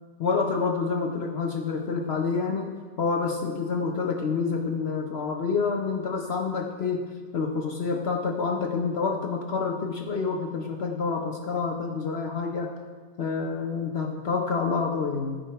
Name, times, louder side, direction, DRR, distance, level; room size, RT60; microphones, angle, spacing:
voice 1, 0.2-12.8 13.2-15.4, left 4 dB, 70° left, 3 dB, 0.6 m, -28 dB
13.5 x 5.4 x 4.7 m, 1.5 s
omnidirectional pair, 1.9 m